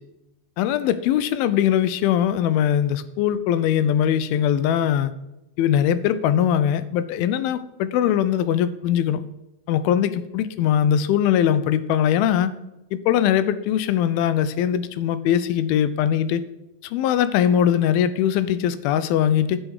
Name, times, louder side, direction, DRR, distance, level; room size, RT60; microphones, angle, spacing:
voice 1, 0.6-5.1 5.6-9.2 9.7-12.5 12.9-16.4 16.8-19.6, left 10 dB, 85° left, 14 dB, 2.4 m, -21 dB
10.5 x 7.1 x 4.8 m, 0.93 s
omnidirectional pair, 4.4 m